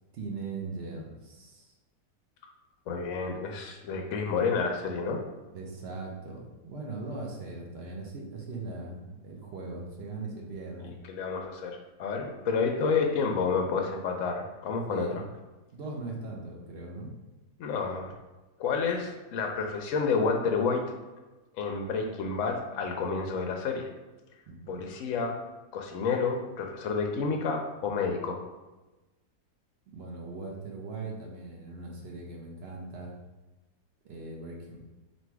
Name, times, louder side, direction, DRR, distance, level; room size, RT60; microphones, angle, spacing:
voice 1, 0.1-1.7 5.5-10.9 14.9-15.2 15.7-17.1 24.5-24.8 29.9-33.1 34.0-34.8, right 3 dB, 60° right, -1 dB, 0.7 m, -40 dB
voice 2, 2.9-5.2 11.1-15.2 17.6-18.1 18.6-20.8 21.6-23.9 24.7-25.4 25.7-28.4, left 5 dB, 70° left, 2 dB, 0.8 m, -29 dB
3.1 x 2.6 x 4.5 m, 1.1 s
omnidirectional pair, 1.7 m